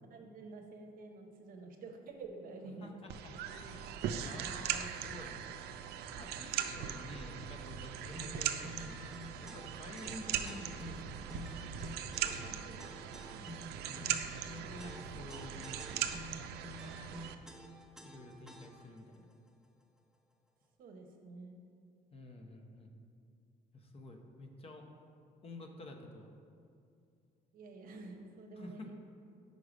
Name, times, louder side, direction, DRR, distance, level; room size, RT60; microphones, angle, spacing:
voice 1, 0.1-2.9 3.5-3.6 12.4-13.5 20.8-21.6 27.5-28.9, right 3 dB, 60° right, 3 dB, 0.8 m, -50 dB
voice 2, 2.8-5.4 6.2-9.1 9.4-11.3 13.8-16.1 18.0-19.3 22.1-22.9 23.7-24.9 25.4-26.3 28.5-28.9, left 1 dB, 35° left, 3 dB, 0.7 m, -50 dB
sound 1, 3.1-17.3, right 9 dB, 75° right, 0.4 m, -40 dB
sound 2, 8.1-19.0, equal, 5° right, 0.5 m, -50 dB
5.3 x 4.8 x 5.0 m, 2.4 s
cardioid pair, 110°, 17 cm